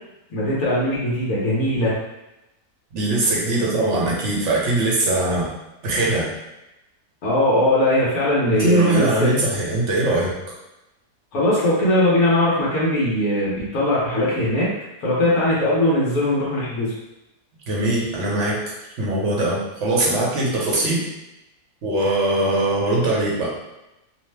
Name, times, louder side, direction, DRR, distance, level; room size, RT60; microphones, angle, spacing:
voice 1, 0.3-1.9 7.2-9.3 11.3-14.7 15.0-16.9, left 1 dB, 70° left, -7 dB, 1.2 m, -20 dB
voice 2, 2.9-5.5 5.8-6.3 8.4-10.4 17.7-21.1 21.8-23.5, right 2 dB, 55° right, -4 dB, 1.0 m, -21 dB
3.0 x 2.0 x 3.2 m, 0.94 s
omnidirectional pair, 1.6 m